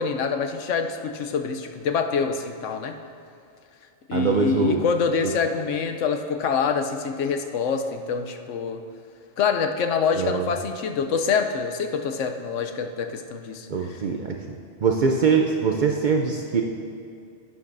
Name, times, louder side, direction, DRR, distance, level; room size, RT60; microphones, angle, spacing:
voice 1, 0.0-3.0 4.1-8.8 9.4-14.0, left 5 dB, 75° left, 6 dB, 1.0 m, -26 dB
voice 2, 4.1-4.8 5.2-5.3 10.2-10.5 13.7-14.3 14.8-16.6, right 5 dB, 55° right, 2 dB, 0.5 m, -22 dB
11.5 x 9.9 x 2.6 m, 2.5 s
omnidirectional pair, 1.3 m